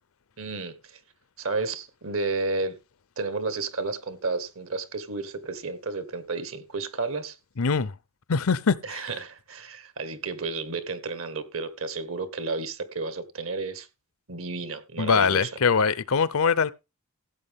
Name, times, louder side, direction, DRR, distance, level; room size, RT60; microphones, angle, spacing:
voice 1, 0.4-1.0 1.4-2.8 3.2-7.4 8.8-13.9 14.3-15.5, right 3 dB, 65° right, 1.5 m, -32 dB
voice 2, 7.6-7.9 8.3-9.1 15.0-16.7, left 5 dB, 70° left, 0.6 m, -23 dB
15.5 x 8.3 x 3.6 m
head